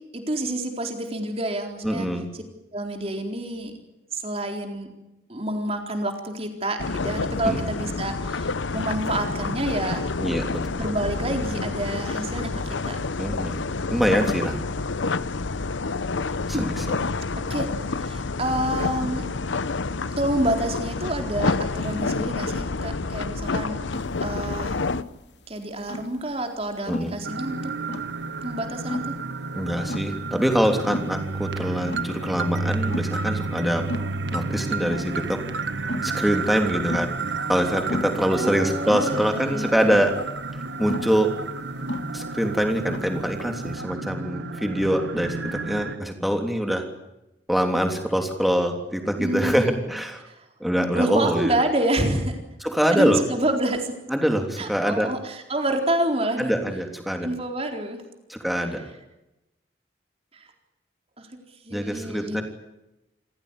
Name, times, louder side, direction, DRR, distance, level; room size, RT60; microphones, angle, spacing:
voice 1, 0.1-2.1 2.7-3.7 4.1-4.9 5.3-10.1 10.8-13.1 16.5-16.7 17.5-19.3 20.2-23.9 24.2-24.8 25.5-27.7 28.4-29.2 38.3-40.0 49.2-49.8 50.2-50.5 51.0-52.4 52.9-53.9 54.6-56.5 57.2-58.0 61.2-61.3 61.6-62.4, right 1 dB, 30° right, 4 dB, 4.1 m, -28 dB
voice 2, 1.8-2.3 7.4-7.6 10.2-10.8 13.2-13.6 13.9-14.6 16.5-17.0 26.9-27.2 29.5-33.8 34.3-35.4 36.0-37.1 37.5-40.1 40.8-41.3 42.1-46.8 47.5-50.2 50.6-51.5 52.6-53.2 54.1-55.1 56.4-57.3 58.3-58.8 61.7-62.4, equal, ahead, 4 dB, 3.2 m, -24 dB
sound 1, 6.8-25.0, left 3 dB, 90° left, 0.8 m, -28 dB
sound 2, 23.9-43.7, left 1 dB, 70° left, 2.7 m, -36 dB
sound 3, 27.2-46.0, right 3 dB, 75° right, 1.6 m, -31 dB
28.0 x 16.0 x 10.0 m, 0.95 s
head